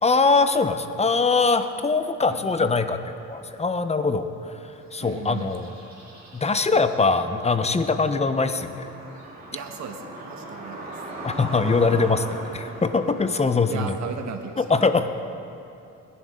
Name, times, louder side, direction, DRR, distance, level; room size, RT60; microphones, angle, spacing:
voice 1, 0.0-5.7 6.3-8.9 11.2-14.0 14.6-15.1, left 4 dB, 20° left, 9 dB, 0.8 m, -22 dB
voice 2, 2.2-2.7 5.0-5.5 9.5-10.9 13.7-14.9, right 6 dB, 65° right, 5 dB, 1.4 m, -36 dB
sound 1, 4.8-14.4, right 1 dB, 30° right, 4.0 m, -40 dB
21.0 x 11.0 x 3.8 m, 2.8 s
cardioid pair, 90°, 30 cm